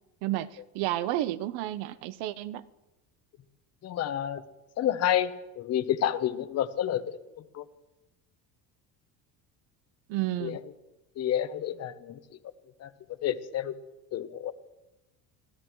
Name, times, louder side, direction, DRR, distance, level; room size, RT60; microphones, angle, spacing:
voice 1, 0.2-2.7 10.1-10.6, right 14 dB, 70° right, 16 dB, 0.8 m, -31 dB
voice 2, 3.8-4.4 4.8-5.3 5.6-7.2 7.5-7.6 10.4-10.6 11.2-12.2 12.8-12.9 13.2-13.7 14.1-14.5, left 10 dB, 40° left, 11 dB, 0.9 m, -29 dB
26.0 x 17.0 x 3.1 m, 1.0 s
cardioid pair, 155°, 40 cm